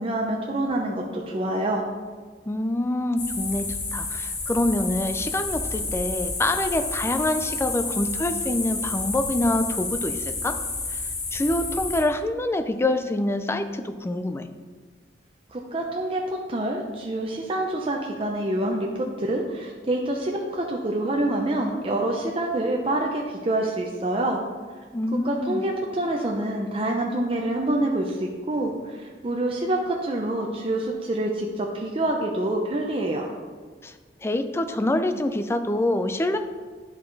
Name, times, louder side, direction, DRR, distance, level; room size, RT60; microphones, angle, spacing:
voice 1, 0.0-1.8 15.5-24.4 25.2-33.3, right 1 dB, 30° right, 0 dB, 0.6 m, -26 dB
voice 2, 2.5-10.6 10.9-11.0 11.3-14.5 24.9-25.6 33.8-33.9 34.2-36.4, left 1 dB, 15° left, 9 dB, 0.4 m, -26 dB
sound 1, 3.2-12.0, left 3 dB, 80° left, 2.0 m, -30 dB
10.5 x 4.8 x 4.0 m, 1.5 s
head